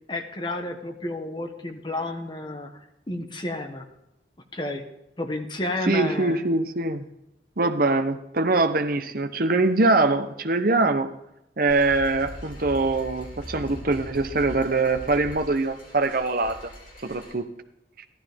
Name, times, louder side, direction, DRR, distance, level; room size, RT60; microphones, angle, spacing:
voice 1, 0.1-3.9 4.5-4.8 5.2-6.4, left 2 dB, 25° left, 1.1 m, -31 dB
voice 2, 5.9-7.1 7.6-11.1 11.6-16.6 17.0-17.5 18.0-18.1, right 3 dB, 50° right, 0.9 m, -23 dB
sound 1, 11.7-17.3, equal, 50° left, 3.5 m, -41 dB
14.0 x 12.0 x 3.6 m
head